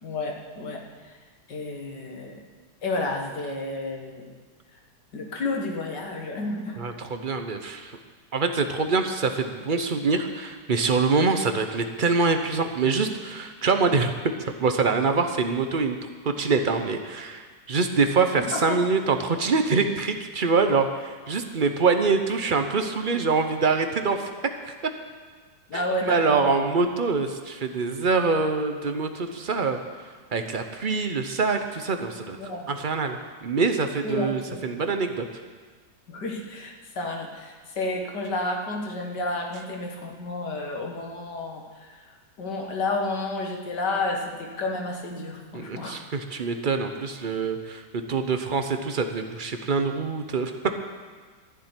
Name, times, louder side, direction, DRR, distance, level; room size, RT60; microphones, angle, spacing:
voice 1, 0.0-1.2 1.5-2.4 2.8-4.3 5.1-6.8 18.4-18.8 25.7-26.5 32.4-32.7 34.0-34.6 36.1-46.0, left 2 dB, 65° left, 1 dB, 2.3 m, -31 dB
voice 2, 6.8-8.0 8.3-16.0 16.2-24.3 24.6-24.7 25.7-32.4 32.7-35.3 45.5-50.8, right 4 dB, 40° right, 6 dB, 0.7 m, -25 dB
13.5 x 7.4 x 9.7 m, 1.5 s
omnidirectional pair, 1.9 m